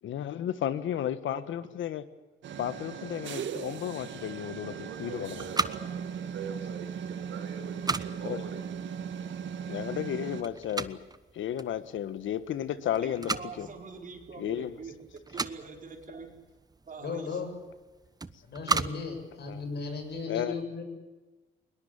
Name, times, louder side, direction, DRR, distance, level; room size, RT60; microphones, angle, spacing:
voice 1, 0.0-2.0 2.6-5.4 8.2-8.4 9.7-11.0 11.3-13.7 14.4-14.7 19.5-19.6 20.3-20.5, left 10 dB, 75° left, 14 dB, 1.6 m, -33 dB
voice 2, 1.3-1.7 4.7-6.9 7.3-8.9 9.8-9.9, right 7 dB, 85° right, 4 dB, 5.7 m, -44 dB
sound 1, 2.4-10.4, right 7 dB, 70° right, 1.8 m, -38 dB
sound 2, 4.9-20.2, right 3 dB, 20° right, 1.0 m, -38 dB
voice 3, 13.0-15.0 15.3-16.3 16.9-17.4, right 4 dB, 40° right, 3 dB, 4.7 m, -44 dB
voice 4, 17.0-17.5 18.4-20.8, left 4 dB, 55° left, 5 dB, 7.2 m, -36 dB
21.5 x 20.5 x 8.7 m, 1.2 s
cardioid pair, 90°, 20 cm